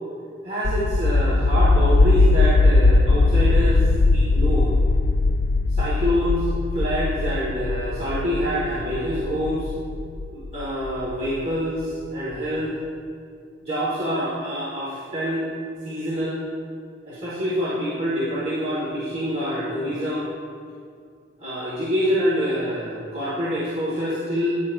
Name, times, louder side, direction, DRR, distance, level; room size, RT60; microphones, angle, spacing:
voice 1, 0.4-3.8 4.1-4.7 5.7-9.7 10.3-12.7 13.6-15.4 15.8-16.4 17.0-20.3 21.4-24.6, equal, 40° right, -9 dB, 1.6 m, -26 dB
sound 1, 0.6-11.3, left 3 dB, 85° left, 0.4 m, -20 dB
11.0 x 9.5 x 2.6 m, 2.2 s
head